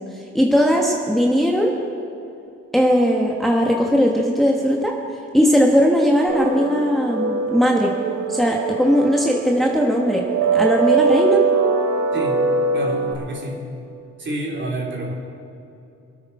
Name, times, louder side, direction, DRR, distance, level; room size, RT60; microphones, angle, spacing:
voice 1, 0.3-1.7 2.7-4.9 5.3-7.9 8.3-10.2 10.5-11.4, equal, ahead, -1 dB, 1.4 m, -18 dB
sound 1, 6.3-13.1, right 5 dB, 70° right, 2.8 m, -22 dB
voice 2, 12.1-12.4 12.7-13.6 14.2-15.1, right 1 dB, 40° right, -2 dB, 3.4 m, -28 dB
23.5 x 8.8 x 4.8 m, 2.7 s
cardioid pair, 90°, 30 cm